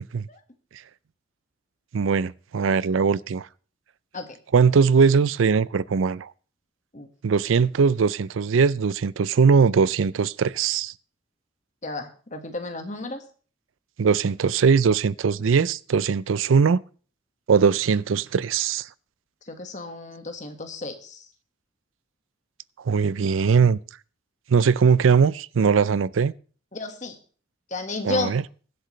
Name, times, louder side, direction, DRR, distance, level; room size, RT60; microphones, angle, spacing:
voice 1, 1.9-3.5 4.5-6.3 7.2-10.9 14.0-16.8 17.5-18.9 22.9-23.8 24.5-26.3 28.0-28.4, right 5 dB, 85° right, 0.4 m, -20 dB
voice 2, 11.8-13.2 19.4-21.2 26.7-27.2 27.7-28.4, left 3 dB, 40° left, 1.6 m, -32 dB
22.5 x 7.8 x 3.2 m
head